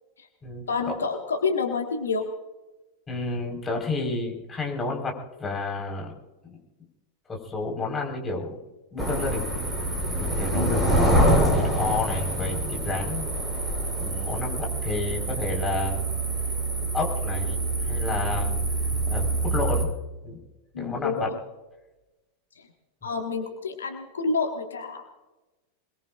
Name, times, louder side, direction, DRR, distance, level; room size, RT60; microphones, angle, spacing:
voice 1, 0.7-2.3 10.5-10.8 20.7-21.4 23.0-25.3, left 4 dB, 70° left, 4 dB, 1.8 m, -28 dB
voice 2, 3.1-6.1 6.4-6.6 7.3-8.5 8.9-9.5 10.2-10.8 11.2-13.2 13.9-16.1 16.9-18.6 19.1-19.9 20.2-20.4 20.8-21.3 23.0-23.1, left 3 dB, 15° left, 0 dB, 4.7 m, -31 dB
sound 1, 9.0-19.8, right 1 dB, 10° right, 7.4 m, -25 dB
26.5 x 21.5 x 2.5 m, 1.1 s
figure-of-eight pair, 90°, 0 cm